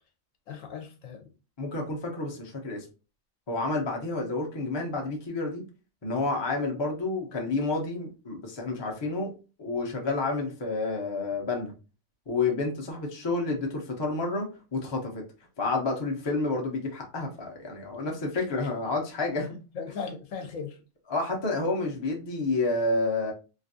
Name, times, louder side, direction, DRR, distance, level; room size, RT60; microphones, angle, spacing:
voice 1, 0.5-1.3 18.0-18.4 19.7-20.8, left 5 dB, 75° left, 4 dB, 1.0 m, -38 dB
voice 2, 1.6-2.8 3.5-5.6 6.0-9.3 9.6-11.7 12.3-15.2 15.6-19.5 21.1-23.3, left 3 dB, 30° left, 1 dB, 0.5 m, -29 dB
3.3 x 2.5 x 2.6 m, 0.32 s
omnidirectional pair, 1.4 m